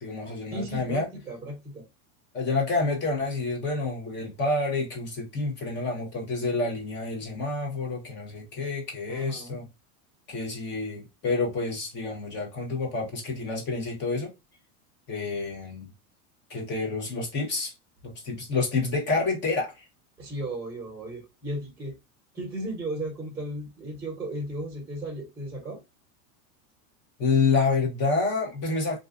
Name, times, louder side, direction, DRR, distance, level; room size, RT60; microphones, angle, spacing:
voice 1, 0.0-1.1 2.3-9.7 10.3-14.3 15.1-15.9 16.5-17.7 18.0-19.8 27.2-29.0, left 3 dB, 25° left, 0.7 m, -28 dB
voice 2, 0.5-1.8 9.1-9.6 20.2-22.0 22.3-25.8, right 1 dB, 5° right, 1.0 m, -35 dB
2.4 x 2.3 x 2.3 m
supercardioid pair, 160°, 42 cm